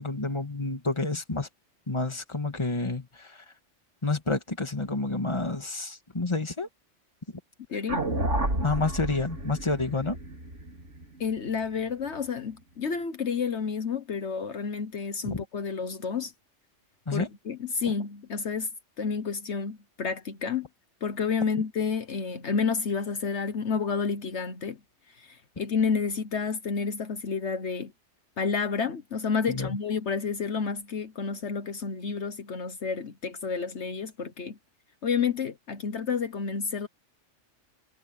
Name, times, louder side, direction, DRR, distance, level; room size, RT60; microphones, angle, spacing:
voice 1, 0.0-1.5 1.9-3.4 4.0-6.7 8.6-10.2 15.2-15.4 17.1-17.3 29.5-29.8, left 3 dB, 25° left, 2.0 m, -29 dB
voice 2, 7.7-8.0 11.2-16.3 17.1-18.7 19.0-20.7 21.0-24.8 25.1-27.9 28.4-34.6 35.0-36.9, left 5 dB, 70° left, 1.5 m, -30 dB
sound 1, 7.9-12.2, right 1 dB, 75° right, 4.4 m, -31 dB
omnidirectional pair, 1.2 m